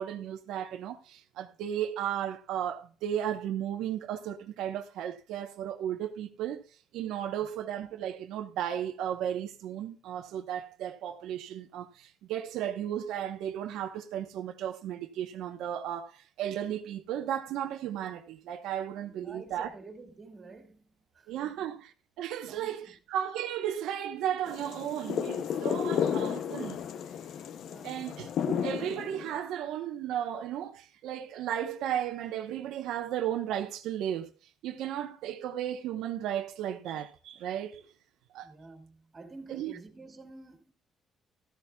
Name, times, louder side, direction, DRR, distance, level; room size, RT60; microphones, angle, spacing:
voice 1, 0.0-6.6 6.9-19.7 21.3-21.8 22.2-26.8 27.8-34.3 34.6-37.8 38.3-38.5 39.5-39.7, right 10 dB, 85° right, 1.0 m, -34 dB
voice 2, 19.1-21.8 22.5-22.9 27.6-28.1 38.4-40.7, right 3 dB, 25° right, 2.3 m, -50 dB
sound 1, 24.5-29.4, left 8 dB, 60° left, 0.6 m, -32 dB
13.5 x 13.5 x 2.3 m
cardioid pair, 140°, 0 cm